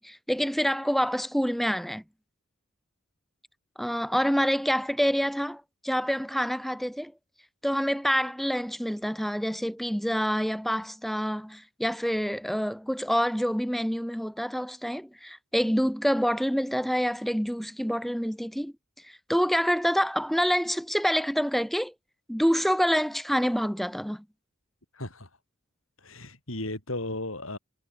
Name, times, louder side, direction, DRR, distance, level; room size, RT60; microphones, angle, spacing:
voice 1, 0.0-2.0 3.8-7.1 7.6-18.7 19.0-21.9 22.3-24.2, equal, ahead, 5.3 m, -27 dB
voice 2, 24.9-25.3 26.0-27.6, left 1 dB, 80° left, 8.0 m, -35 dB
head